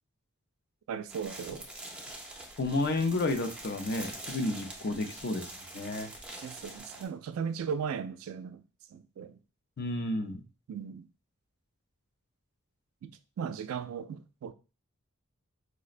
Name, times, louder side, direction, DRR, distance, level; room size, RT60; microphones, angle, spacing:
voice 1, 0.9-1.7 6.4-8.6 8.9-9.4 10.7-11.1 13.0-13.1 13.4-14.5, right 7 dB, 75° right, 0.3 m, -37 dB
sound 1, 1.1-7.1, right 1 dB, 5° right, 0.5 m, -45 dB
voice 2, 2.6-6.1 9.8-10.4, left 2 dB, 50° left, 0.5 m, -31 dB
4.8 x 2.0 x 2.4 m
head